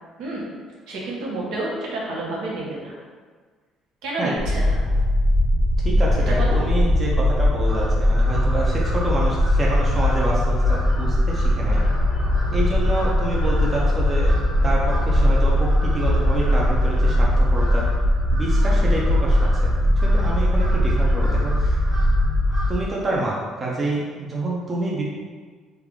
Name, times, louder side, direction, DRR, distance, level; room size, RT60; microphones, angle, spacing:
voice 1, 0.9-2.9 4.0-4.8 6.3-6.6, right 2 dB, 80° right, -4 dB, 0.9 m, -29 dB
sound 1, 4.4-22.7, left 1 dB, 40° right, 0.8 m, -20 dB
voice 2, 5.8-11.8 12.5-14.4 14.6-17.9 18.3-19.4 20.0-21.8 22.7-25.0, right 2 dB, 20° right, -4 dB, 0.5 m, -27 dB
Crow, 7.6-23.0, equal, ahead, 1.1 m, -38 dB
sound 2, 11.6-17.2, left 2 dB, 65° left, 0.4 m, -30 dB
3.3 x 2.4 x 3.5 m, 1.5 s
cardioid pair, 160°, 0 cm